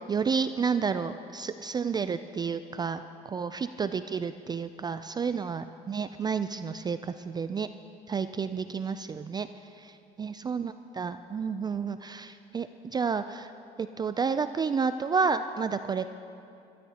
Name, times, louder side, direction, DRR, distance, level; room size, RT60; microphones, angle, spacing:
voice 1, 0.0-7.7 8.1-9.5 9.8-13.5 13.8-16.1, right 5 dB, 25° right, 11 dB, 0.4 m, -31 dB
23.0 x 12.5 x 2.9 m, 2.6 s
supercardioid pair, 90°, 17 cm